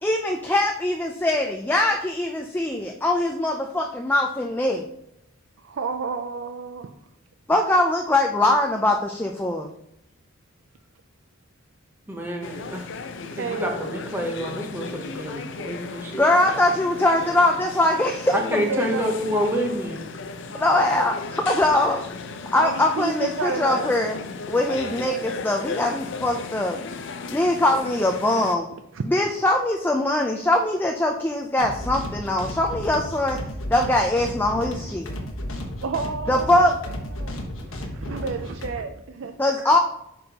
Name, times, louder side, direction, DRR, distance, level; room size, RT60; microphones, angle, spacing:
voice 1, 0.0-4.8 7.5-9.7 16.2-18.4 20.6-22.0 22.5-24.2 24.5-26.8 27.3-28.7 29.0-33.4 33.7-35.1 36.3-36.8 39.4-39.8, left 1 dB, 10° left, 2 dB, 0.4 m, -22 dB
voice 2, 5.6-6.9 13.4-13.8 18.5-19.0 20.8-21.1 22.5-23.9 28.9-29.0 35.8-37.4 37.7-39.4, right 4 dB, 70° right, 6 dB, 0.5 m, -31 dB
voice 3, 12.1-12.9 13.4-16.3 18.3-20.1, equal, 10° right, 1 dB, 0.8 m, -28 dB
sound 1, 12.4-28.6, left 4 dB, 60° left, 0.6 m, -35 dB
sound 2, 31.6-38.7, left 1 dB, 85° left, 1.2 m, -33 dB
7.9 x 5.4 x 2.9 m, 0.78 s
head